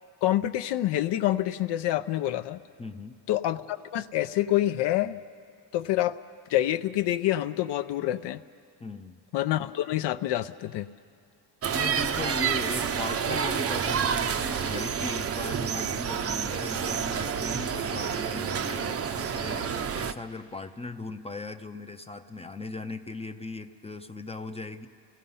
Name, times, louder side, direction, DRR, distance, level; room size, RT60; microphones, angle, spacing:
voice 1, 0.2-2.6 3.3-5.2 5.7-6.2 6.5-8.4 9.3-10.9, left 14 dB, 80° left, 10 dB, 0.6 m, -27 dB
voice 2, 2.8-3.2 8.8-9.2 11.7-24.9, left 3 dB, 15° left, 7 dB, 0.5 m, -38 dB
sound 1, 11.6-20.1, right 7 dB, 35° right, 0.6 m, -29 dB
29.5 x 17.0 x 5.5 m, 2.3 s
cardioid pair, 130°, 41 cm